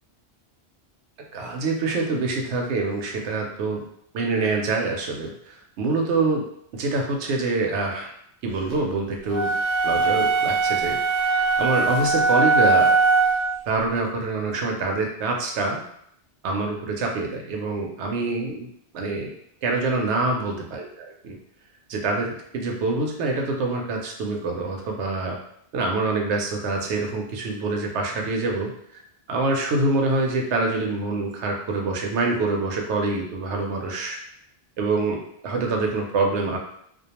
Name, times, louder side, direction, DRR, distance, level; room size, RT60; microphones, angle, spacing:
voice 1, 1.3-3.8 4.1-6.4 6.7-8.1 8.4-9.5 9.8-12.9 13.7-15.8 16.4-18.7 18.9-19.3 19.6-20.8 21.2-21.4 21.9-25.4 25.7-28.7 29.3-34.2 34.8-36.6, right 3 dB, 85° right, 1 dB, 0.9 m, -25 dB
sound 1, 9.3-13.6, right 3 dB, 50° right, 0.6 m, -20 dB
2.3 x 2.2 x 2.8 m, 0.72 s
omnidirectional pair, 1.1 m